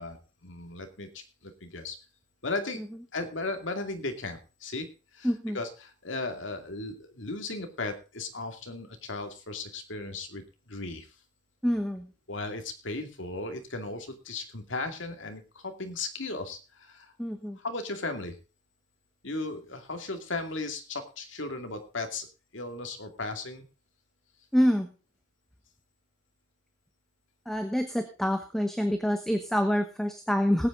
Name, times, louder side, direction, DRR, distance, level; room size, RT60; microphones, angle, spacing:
voice 1, 0.0-2.0 2.4-2.8 3.1-4.9 5.1-5.3 5.5-11.1 12.3-17.1 17.6-18.4 19.2-22.3 22.5-23.7, left 3 dB, 70° left, 6 dB, 2.4 m, -36 dB
voice 2, 5.2-5.6 11.6-12.1 17.2-17.6 24.5-24.9 27.5-30.7, equal, ahead, 6 dB, 1.1 m, -26 dB
19.5 x 8.8 x 3.8 m, 0.33 s
head